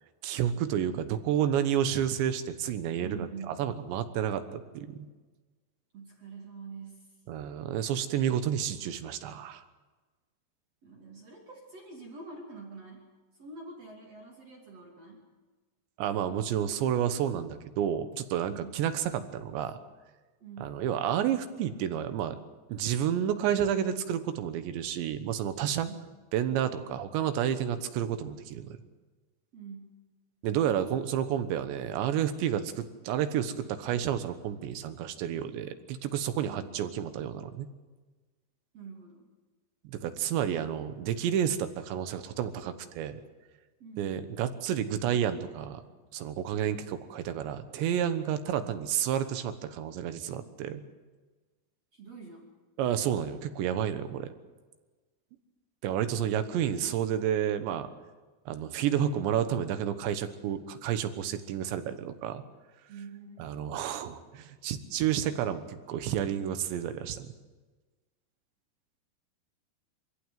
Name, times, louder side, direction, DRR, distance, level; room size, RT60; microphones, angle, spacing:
voice 1, 0.2-5.1 7.3-9.6 16.0-19.8 20.6-22.4 22.7-25.9 26.3-28.8 30.4-37.7 39.8-43.2 44.0-45.8 46.1-50.8 52.8-54.3 55.8-57.9 58.5-62.4 63.4-67.3, right 9 dB, 90° right, 10 dB, 3.5 m, -30 dB
voice 2, 3.0-3.8 5.9-7.1 10.8-13.1 13.4-15.2 18.5-18.8 20.4-20.8 25.8-26.0 29.5-29.9 36.5-36.6 38.7-39.2 43.8-44.2 51.9-52.5 62.9-63.6, right 4 dB, 40° right, 0 dB, 3.2 m, -45 dB
24.5 x 15.5 x 9.2 m, 1.3 s
omnidirectional pair, 5.0 m